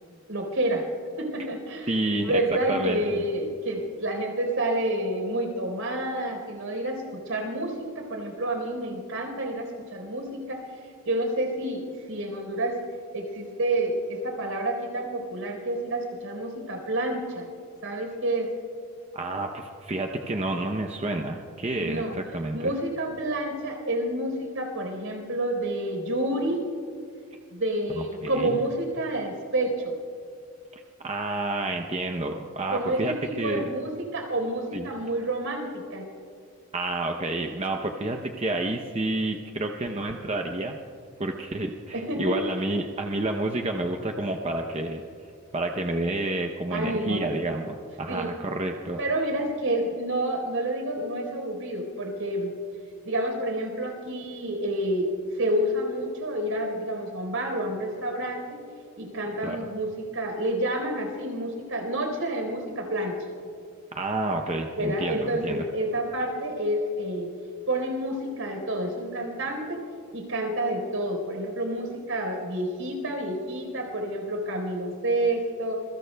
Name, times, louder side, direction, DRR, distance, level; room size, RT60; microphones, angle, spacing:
voice 1, 0.3-0.9 1.2-12.8 13.1-17.5 17.8-18.5 21.8-22.1 22.5-26.6 27.5-30.0 32.7-36.1 41.9-42.4 46.7-47.3 48.1-48.3 49.0-52.5 53.0-55.1 55.3-58.6 59.0-63.2 64.8-67.3 67.7-69.8 70.1-75.8, right 1 dB, 75° right, 2 dB, 4.1 m, -29 dB
voice 2, 1.9-3.2 19.1-22.7 28.0-28.6 31.0-33.7 34.7-34.9 36.7-40.8 41.2-45.0 45.5-49.0 59.4-59.6 63.9-65.7, right 2 dB, 30° right, 3 dB, 0.7 m, -29 dB
27.0 x 23.0 x 2.3 m, 2.4 s
head